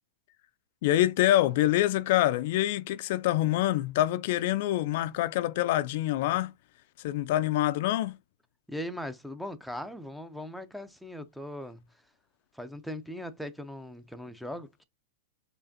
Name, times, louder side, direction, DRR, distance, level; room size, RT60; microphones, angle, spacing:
voice 1, 0.8-6.5 7.0-8.2, left 14 dB, 60° left, 0.3 m, -26 dB
voice 2, 8.7-12.0 12.5-14.8, equal, ahead, 0.5 m, -39 dB
4.8 x 2.5 x 2.5 m
hypercardioid pair, 125°, 0 cm